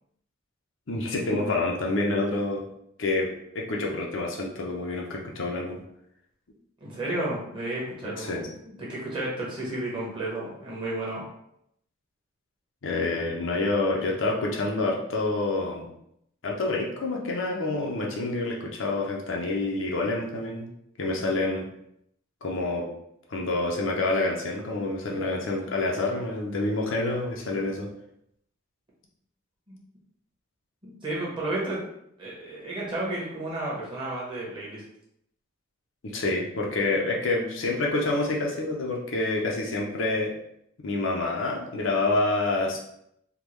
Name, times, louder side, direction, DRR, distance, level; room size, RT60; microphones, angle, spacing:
voice 1, 0.9-2.7 3.0-5.8 8.2-8.5 12.8-15.9 16.4-20.7 21.0-21.7 22.4-22.9 23.3-27.9 36.0-40.3 40.8-42.8, left 2 dB, 65° left, -1 dB, 0.6 m, -27 dB
voice 2, 6.8-11.2 29.7-29.8 30.8-31.8 32.2-34.8, right 2 dB, 25° right, -6 dB, 1.1 m, -32 dB
3.5 x 2.3 x 3.1 m, 0.75 s
head